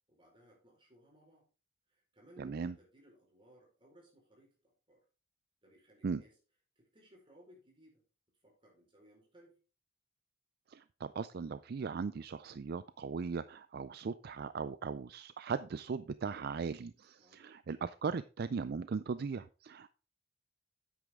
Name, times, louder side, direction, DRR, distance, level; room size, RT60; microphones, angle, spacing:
voice 1, 0.1-1.5 1.9-5.0 5.6-6.4 6.8-8.0 8.4-9.6 17.2-17.4, equal, 25° right, -1 dB, 4.5 m, -62 dB
voice 2, 2.4-2.7 6.0-6.2 10.7-19.9, right 5 dB, 50° right, 14 dB, 0.4 m, -38 dB
9.5 x 8.5 x 3.7 m, 0.34 s
head